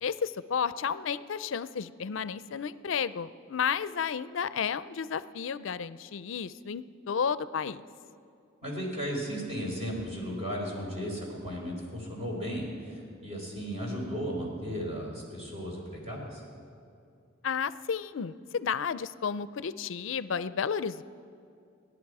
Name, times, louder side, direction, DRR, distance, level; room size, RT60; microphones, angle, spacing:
voice 1, 0.0-7.8 17.4-21.0, left 6 dB, 65° left, 15 dB, 0.4 m, -32 dB
voice 2, 8.6-16.4, equal, 30° right, -2 dB, 4.0 m, -35 dB
29.0 x 10.0 x 4.8 m, 2.5 s
head